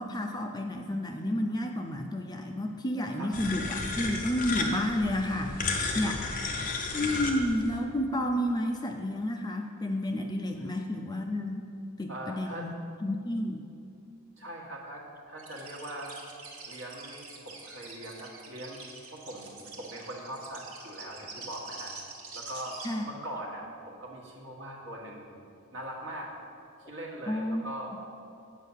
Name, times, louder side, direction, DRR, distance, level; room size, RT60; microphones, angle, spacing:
voice 1, 0.0-5.6 5.9-6.2 6.9-11.6 12.0-13.6 22.8-23.0 27.3-27.7, left 1 dB, 20° left, 3 dB, 0.4 m, -31 dB
sound 1, 3.3-7.8, left 3 dB, 35° left, 0.9 m, -33 dB
voice 2, 12.1-12.7 14.4-16.3 16.7-18.8 19.1-21.9 22.3-22.8 23.0-25.4 25.7-26.3 26.9-27.9, right 1 dB, 55° right, -2 dB, 1.6 m, -41 dB
sound 2, 15.4-22.9, right 4 dB, 75° right, 1.4 m, -45 dB
8.3 x 5.5 x 7.3 m, 2.4 s
head